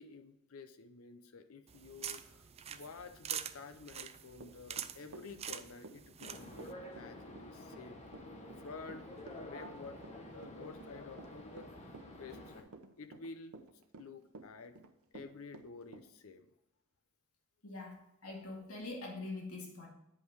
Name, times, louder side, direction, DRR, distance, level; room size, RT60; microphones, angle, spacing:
voice 1, 0.0-12.7 13.0-13.6 14.0-14.8 15.1-16.5, left 4 dB, 70° left, 9 dB, 0.7 m, -51 dB
sound 1, 1.7-6.7, right 9 dB, 30° right, 0.4 m, -45 dB
Run / Walk footsteps, 4.4-16.1, right 3 dB, 70° right, 0.8 m, -52 dB
sound 2, 6.2-12.6, left 1 dB, 30° left, 1.4 m, -50 dB
voice 2, 17.6-19.9, left 2 dB, 85° left, -1 dB, 2.1 m, -44 dB
9.2 x 5.3 x 4.7 m, 0.85 s
head